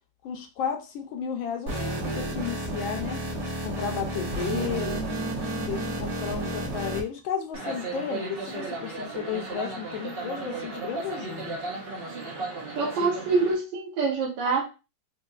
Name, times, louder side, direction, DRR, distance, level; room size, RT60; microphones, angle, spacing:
voice 1, 0.2-3.2 3.6-5.0 5.7-11.6, left 7 dB, 75° left, 4 dB, 1.3 m, -33 dB
sound 1, 1.7-7.0, right 1 dB, 45° right, 1.7 m, -31 dB
voice 2, 4.5-6.0 12.7-14.6, right 4 dB, 65° right, -2 dB, 1.4 m, -27 dB
sound 2, 7.5-13.5, right 3 dB, 85° right, 0.5 m, -35 dB
4.4 x 2.6 x 2.3 m, 0.30 s
omnidirectional pair, 2.3 m